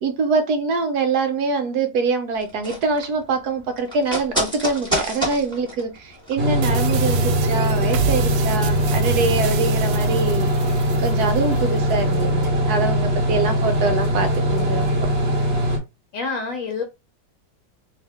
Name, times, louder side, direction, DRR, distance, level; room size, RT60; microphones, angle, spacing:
voice 1, 0.0-10.5 11.0-15.1, right 4 dB, 70° right, 1.1 m, -24 dB
sound 1, 2.4-7.0 7.3-7.4, equal, 5° left, 1.7 m, -29 dB
sound 2, 6.4-15.8, equal, 40° right, 1.2 m, -21 dB
sound 3, 6.6-11.6, right 10 dB, 85° right, 1.3 m, -29 dB
voice 2, 16.1-16.8, left 4 dB, 60° left, 0.9 m, -27 dB
3.4 x 2.8 x 3.5 m
omnidirectional pair, 1.9 m